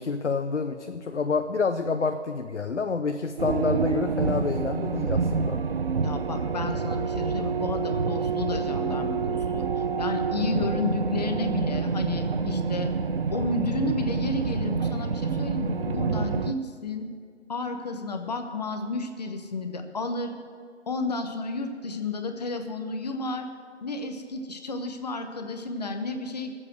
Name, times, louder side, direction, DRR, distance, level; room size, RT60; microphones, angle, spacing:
voice 1, 0.0-5.6, left 4 dB, 75° left, 7 dB, 0.8 m, -28 dB
sound 1, 3.4-16.5, right 5 dB, 55° right, 0.6 m, -27 dB
voice 2, 6.0-9.6 10.0-12.9 13.3-17.1 17.5-20.3 20.9-23.5 23.8-26.5, left 3 dB, 35° left, 6 dB, 1.1 m, -31 dB
19.5 x 7.8 x 6.3 m, 2.2 s
figure-of-eight pair, 155°, 35 cm